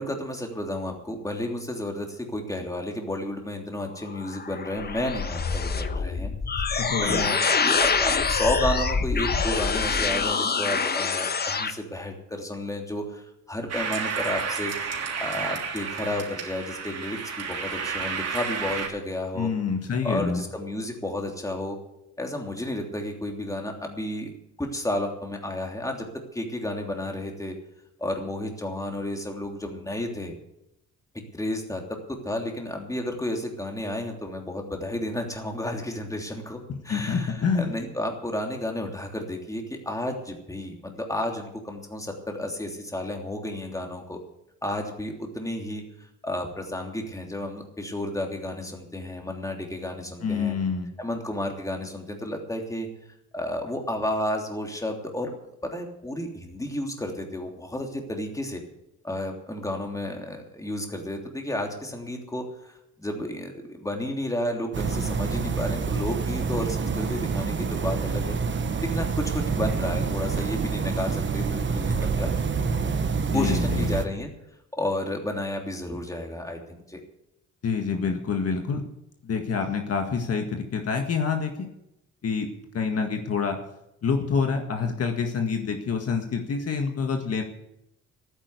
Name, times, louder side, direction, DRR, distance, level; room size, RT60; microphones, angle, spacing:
voice 1, 0.0-6.3 7.0-14.7 15.2-19.5 20.0-21.8 22.2-27.5 28.0-30.3 31.3-36.6 36.8-44.2 44.6-50.6 51.0-52.9 53.3-58.6 59.0-62.7 63.0-68.4 68.8-72.3 73.3-74.3 74.7-77.0, left 1 dB, 10° left, 2 dB, 3.1 m, -32 dB
sound 1, 4.0-11.7, left 5 dB, 30° left, 1.2 m, -25 dB
voice 2, 6.8-7.2 19.4-20.4 36.7-37.7 50.2-50.9 73.3-73.9 77.6-78.8 79.2-81.7 82.2-82.5 82.7-83.6 84.0-87.4, left 5 dB, 55° left, 4 dB, 1.8 m, -27 dB
sound 2, 13.7-18.9, right 5 dB, 55° right, 3.3 m, -31 dB
sound 3, 64.7-74.1, right 5 dB, 40° right, 1.2 m, -27 dB
12.0 x 10.0 x 8.3 m, 0.84 s
cardioid pair, 90°, 30 cm